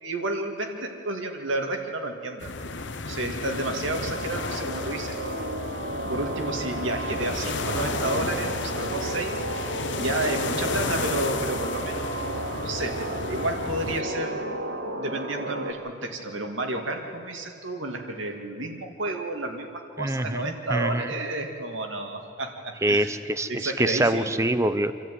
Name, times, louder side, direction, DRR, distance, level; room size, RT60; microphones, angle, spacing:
voice 1, 0.0-2.7 3.1-5.6 6.1-9.4 10.0-12.4 12.6-13.0 13.3-14.4 15.0-23.2 23.5-24.4, right 2 dB, 75° right, 3 dB, 2.4 m, -31 dB
Beach Surf, 2.4-14.0, left 3 dB, 65° left, 1.0 m, -33 dB
sound 1, 3.4-15.7, right 1 dB, 90° right, 2.8 m, -33 dB
voice 2, 20.0-21.1 22.8-24.9, right 1 dB, 15° right, 12 dB, 0.7 m, -25 dB
27.0 x 13.5 x 9.5 m, 2.5 s
head